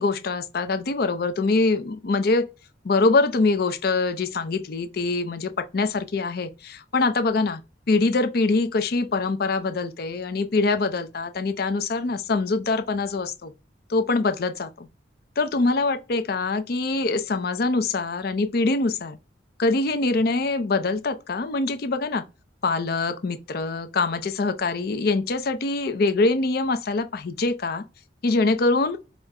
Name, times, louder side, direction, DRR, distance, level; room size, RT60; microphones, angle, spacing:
voice 1, 0.0-2.5 2.8-7.6 7.9-13.5 13.9-14.9 15.4-19.2 19.6-22.2 22.6-27.8 28.2-29.0, left 3 dB, 55° left, 0.5 m, -24 dB
4.9 x 2.1 x 3.3 m
head